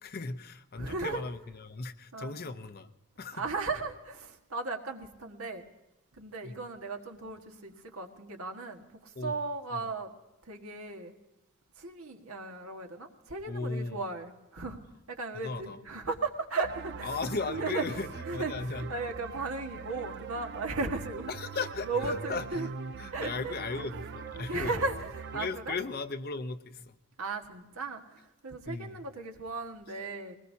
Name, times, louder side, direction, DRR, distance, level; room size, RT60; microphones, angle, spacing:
voice 1, 0.0-2.9 3.2-3.4 6.4-6.6 9.1-9.4 9.7-9.9 13.5-14.0 15.4-15.8 17.0-18.9 21.3-22.7 23.0-24.9 25.3-27.0 28.7-29.0, left 3 dB, 45° left, 10 dB, 0.7 m, -37 dB
voice 2, 0.8-1.2 2.1-2.4 3.3-5.6 6.1-10.1 10.5-11.1 11.8-14.8 15.1-17.2 17.5-17.9 18.3-21.3 21.8-22.7 23.1-23.9 24.5-25.8 27.2-30.4, right 3 dB, 70° right, 3 dB, 1.7 m, -36 dB
sound 1, 16.6-25.5, right 5 dB, 50° right, 0.6 m, -42 dB
21.5 x 19.5 x 2.8 m, 1.0 s
head